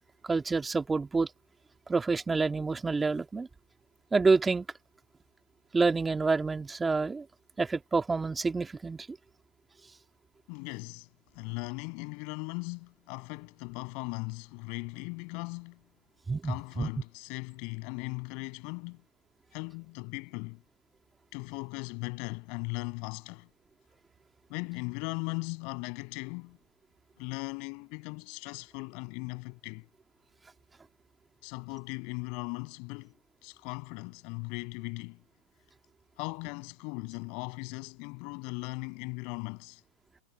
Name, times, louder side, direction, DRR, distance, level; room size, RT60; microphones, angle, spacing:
voice 1, 0.2-1.3 1.9-3.5 4.1-4.7 5.7-7.3 7.6-9.1 16.3-16.9, right 4 dB, 15° right, 2.4 m, -28 dB
voice 2, 10.5-11.1 11.3-15.8 16.4-19.0 19.5-20.6 21.3-23.5 24.5-26.6 27.2-29.9 31.4-33.1 33.4-35.2 36.2-39.8, left 35 dB, 55° left, 7.6 m, -38 dB
hypercardioid pair, 100°, 0 cm